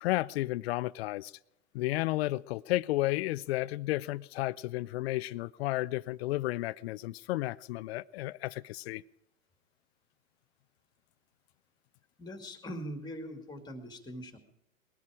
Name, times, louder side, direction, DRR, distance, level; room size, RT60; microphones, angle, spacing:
voice 1, 0.0-1.3 1.7-9.0, left 17 dB, 50° left, 0.5 m, -32 dB
voice 2, 12.2-14.4, equal, 10° left, 2.2 m, -42 dB
20.5 x 12.0 x 5.0 m
hypercardioid pair, 120°, 41 cm